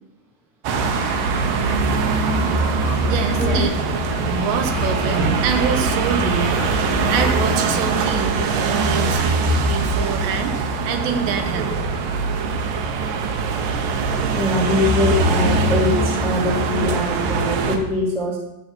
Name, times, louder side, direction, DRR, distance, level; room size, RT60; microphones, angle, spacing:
sound 1, 0.6-17.8, right 3 dB, 75° right, 2.1 m, -22 dB
sound 2, 0.7-7.8, left 11 dB, 80° left, 2.3 m, -34 dB
voice 1, 3.1-3.8 4.3-9.2 9.6-11.7, right 7 dB, 90° right, 6 dB, 3.3 m, -25 dB
voice 2, 14.3-18.4, left 1 dB, 5° right, -4 dB, 0.4 m, -22 dB
12.0 x 8.0 x 4.4 m, 0.88 s
omnidirectional pair, 4.8 m